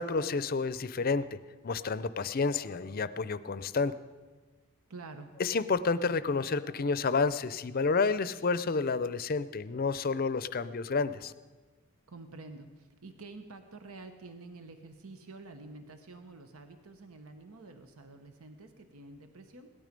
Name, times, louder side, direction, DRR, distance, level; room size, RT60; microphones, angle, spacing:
voice 1, 0.0-1.4 1.6-3.9 5.4-11.3, left 4 dB, 45° left, 15 dB, 0.5 m, -30 dB
voice 2, 4.9-5.3 12.1-19.7, right 3 dB, 85° right, 7 dB, 1.1 m, -48 dB
17.5 x 12.5 x 5.3 m, 1.3 s
head